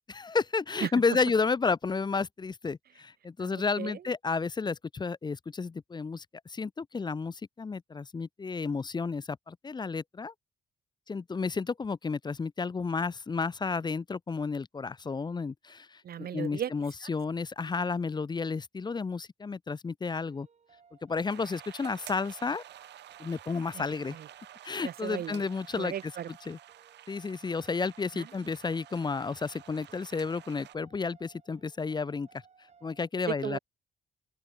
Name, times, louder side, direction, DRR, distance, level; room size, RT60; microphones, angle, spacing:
voice 1, 0.1-10.3 11.1-20.5 21.0-22.6 23.2-24.2 24.6-26.1 26.5-26.6 27.1-32.3 32.8-33.6, left 4 dB, 25° left, 0.9 m, -32 dB
voice 2, 3.4-4.0 16.0-16.7 17.0-17.1 23.7-23.8 24.1-24.3 24.8-25.5 25.8-26.5 28.1-28.3 33.3-33.6, right 10 dB, 60° right, 1.7 m, -36 dB
sound 1, 20.3-33.1, right 6 dB, 40° right, 7.1 m, -61 dB
sound 2, 21.3-30.8, right 12 dB, 80° right, 1.9 m, -51 dB
open air
cardioid pair, 125°, 18 cm